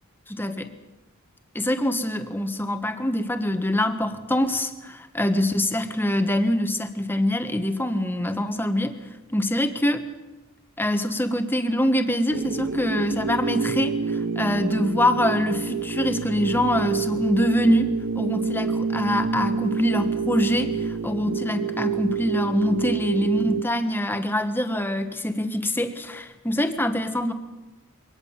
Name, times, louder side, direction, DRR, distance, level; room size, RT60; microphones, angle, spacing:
voice 1, 0.3-0.7 1.5-9.0 9.3-10.0 10.8-27.3, left 1 dB, 10° left, 8 dB, 1.3 m, -24 dB
sound 1, 12.3-23.6, right 5 dB, 55° right, 0.9 m, -28 dB
23.0 x 18.0 x 7.3 m, 1.1 s
head